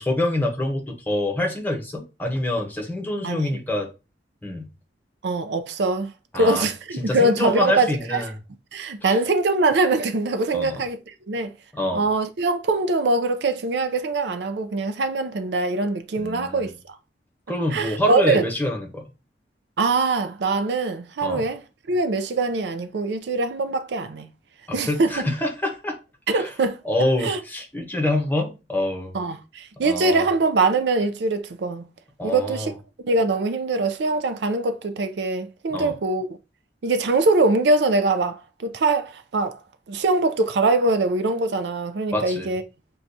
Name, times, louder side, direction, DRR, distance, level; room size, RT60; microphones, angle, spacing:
voice 1, 0.0-3.9 4.4-4.7 6.3-6.7 7.0-8.3 9.1-9.2 10.5-10.8 11.7-12.0 16.2-16.7 17.5-19.1 21.2-21.4 24.7-26.0 26.3-26.5 26.8-29.1 29.8-30.2 32.2-32.7 35.7-35.9 42.1-42.5, left 1 dB, 10° left, 0.8 m, -26 dB
voice 2, 5.2-8.2 8.7-11.5 11.9-17.0 17.7-18.4 19.8-21.6 21.9-24.3 24.7-25.2 26.3-26.8 27.2-27.4 29.1-31.9 32.2-32.7 33.0-36.3 36.8-39.6 39.9-42.6, right 3 dB, 70° right, 0.4 m, -23 dB
6.1 x 2.3 x 2.6 m
head